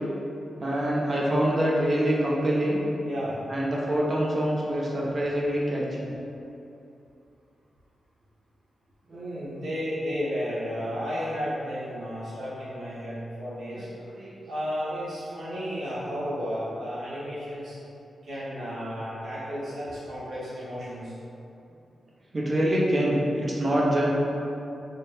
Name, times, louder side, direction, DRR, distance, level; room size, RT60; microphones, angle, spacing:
voice 1, 0.6-2.8 3.5-6.1 9.1-9.2 13.7-13.9 14.1-14.4 22.3-24.1, right 1 dB, 40° right, -4 dB, 0.6 m, -25 dB
voice 2, 3.0-3.4 9.1-13.9 14.5-17.8 18.2-21.2, equal, 65° right, -11 dB, 1.1 m, -33 dB
4.1 x 2.2 x 3.3 m, 2.7 s
cardioid pair, 90°, 0 cm